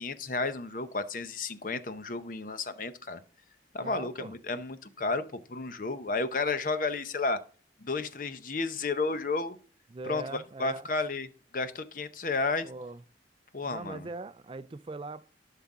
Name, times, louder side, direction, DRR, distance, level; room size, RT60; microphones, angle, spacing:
voice 1, 0.0-3.2 3.7-7.4 7.8-9.6 10.0-12.7 13.5-14.1, left 3 dB, 45° left, 0.7 m, -32 dB
voice 2, 3.8-4.3 9.9-10.9 12.6-13.0 13.6-15.3, right 3 dB, 30° right, 0.3 m, -41 dB
12.0 x 5.7 x 3.7 m
head